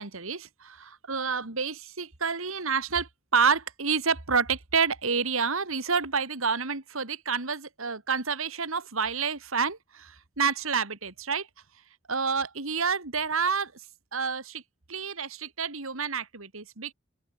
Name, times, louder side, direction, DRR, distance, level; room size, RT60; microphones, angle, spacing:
voice 1, 0.0-11.5 12.1-13.8 14.1-14.6 14.9-16.9, right 5 dB, 65° right, 2.4 m, -29 dB
open air
head